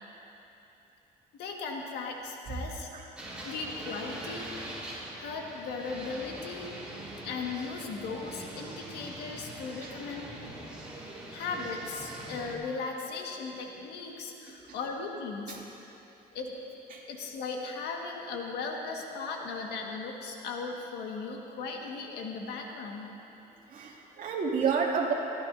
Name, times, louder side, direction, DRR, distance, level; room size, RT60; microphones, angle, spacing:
voice 1, 1.4-2.9 3.4-4.5 5.2-6.7 7.2-10.3 11.3-15.6 16.3-16.5 17.1-23.1, left 4 dB, 80° left, 0 dB, 1.7 m, -37 dB
sound 1, 3.2-12.6, right 1 dB, 5° right, 3.8 m, -43 dB
voice 2, 14.5-14.8 15.5-15.6 16.9-17.0 23.7-25.1, right 5 dB, 55° right, -3 dB, 2.5 m, -31 dB
21.5 x 15.0 x 2.7 m, 3.0 s
cardioid pair, 110°, 17 cm